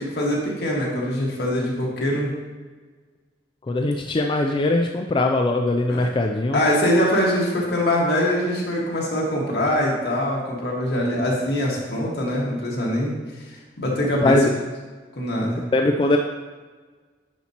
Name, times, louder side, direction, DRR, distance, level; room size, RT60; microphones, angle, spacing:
voice 1, 0.0-2.3 5.9-6.1 6.5-13.1 13.8-14.4 15.1-15.6, left 1 dB, 70° left, -4 dB, 1.6 m, -23 dB
voice 2, 3.7-6.6 14.2-14.5 15.7-16.2, left 2 dB, 30° left, 2 dB, 0.3 m, -21 dB
10.0 x 4.2 x 2.9 m, 1.4 s
head